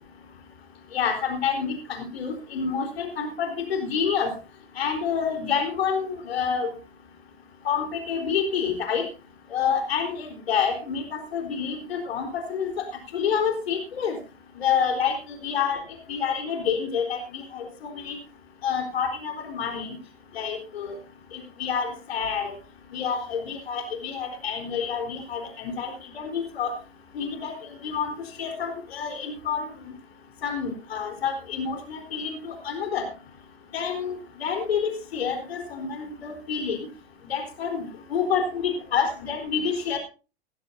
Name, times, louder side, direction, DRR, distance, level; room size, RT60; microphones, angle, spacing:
voice 1, 0.9-4.3 4.8-6.7 7.6-9.0 9.5-12.8 13.1-14.2 14.6-15.2 15.4-15.8 16.1-18.2 18.6-20.0 20.3-21.0 21.3-22.5 22.9-26.7 27.1-29.7 30.4-33.1 33.7-36.9 37.3-40.0, left 6 dB, 70° left, 4 dB, 4.2 m, -28 dB
18.5 x 15.0 x 2.7 m, 0.33 s
figure-of-eight pair, 90°, 31 cm